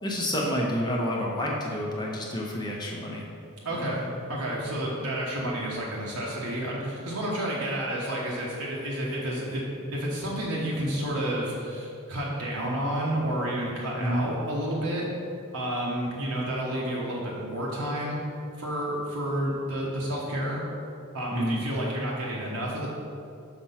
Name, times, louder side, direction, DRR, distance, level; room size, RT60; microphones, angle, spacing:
voice 1, 0.0-3.2 3.7-3.9 14.0-14.3 21.3-21.6, equal, 20° left, -3 dB, 0.7 m, -29 dB
voice 2, 3.6-9.6 9.9-15.1 15.5-18.2 18.6-20.6 21.1-22.9, right 1 dB, 75° right, -5 dB, 1.1 m, -30 dB
5.9 x 4.4 x 5.7 m, 2.5 s
head